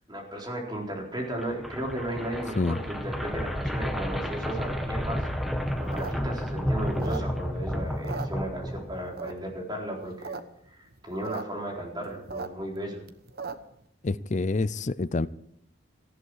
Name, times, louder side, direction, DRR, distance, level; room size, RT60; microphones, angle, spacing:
voice 1, 0.1-5.3 5.8-10.4 10.6-13.0, right 1 dB, 25° right, 4.1 m, -35 dB
sound 1, 1.2-9.3, equal, ahead, 1.5 m, -31 dB
sound 2, 5.8-7.6 7.9-8.8 9.2-9.6 10.0-10.4 10.7-10.8 10.9-11.4 11.8-13.8, right 4 dB, 50° right, 1.0 m, -38 dB
voice 2, 14.0-15.3, left 3 dB, 40° left, 0.5 m, -27 dB
18.5 x 14.5 x 4.8 m
head